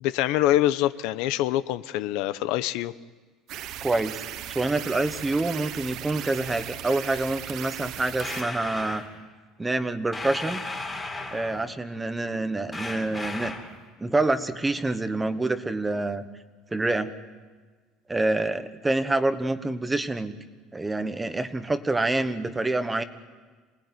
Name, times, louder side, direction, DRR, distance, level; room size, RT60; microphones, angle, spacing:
voice 1, 0.0-2.9, left 14 dB, 70° left, 14 dB, 0.8 m, -25 dB
sound 1, 3.5-8.4, right 11 dB, 50° right, 1.0 m, -37 dB
voice 2, 3.8-4.2 4.5-9.0 9.6-10.6 11.3-13.5 14.0-16.2 16.7-17.1 18.1-20.3 20.7-23.0, right 2 dB, 10° right, 10 dB, 1.1 m, -27 dB
sound 2, 8.2-9.1 10.1-11.7 12.7-13.8, left 2 dB, 10° left, 2.8 m, -35 dB
27.5 x 19.5 x 9.6 m, 1.4 s
cardioid pair, 165°, 0 cm